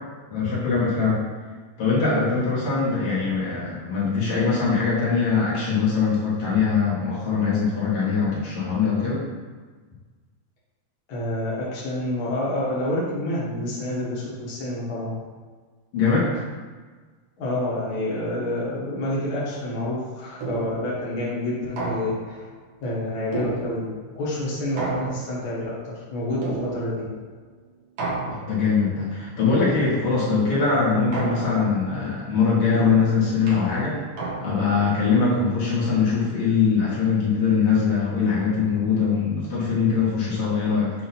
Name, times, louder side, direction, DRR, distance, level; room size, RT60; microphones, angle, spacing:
voice 1, 0.3-1.2 1.8-9.2 15.9-16.4 28.4-34.0 34.4-40.9, left 5 dB, 55° left, -7 dB, 1.7 m, -22 dB
voice 2, 11.1-15.1 17.4-22.4 22.8-23.8 24.1-27.0, left 1 dB, 80° left, -8 dB, 1.1 m, -28 dB
sound 1, 20.4-20.9 21.8-22.4 23.3-24.1 24.8-25.6 26.4-27.1 28.0-28.7 29.6-30.2 31.1-31.8 32.7-34.8, right 3 dB, 80° right, 1.5 m, -32 dB
7.4 x 2.8 x 5.9 m, 1.4 s
omnidirectional pair, 4.9 m